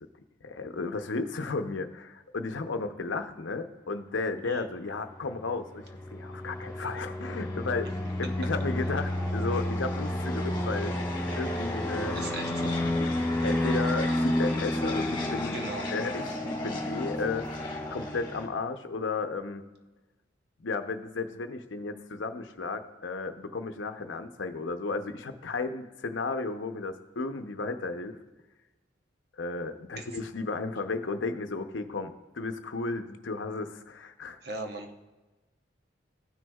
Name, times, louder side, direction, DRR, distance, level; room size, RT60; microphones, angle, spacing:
voice 1, 0.4-7.9 8.2-11.0 11.4-12.2 13.0-19.6 20.6-28.2 29.4-34.4, left 3 dB, 85° left, 8 dB, 0.7 m, -34 dB
sound 1, 5.1-18.5, left 1 dB, 25° left, 1.3 m, -31 dB
voice 2, 12.1-12.8 15.5-15.9 30.0-30.1 34.4-35.0, right 2 dB, 55° right, 3 dB, 0.9 m, -38 dB
15.5 x 6.2 x 2.3 m, 1.2 s
head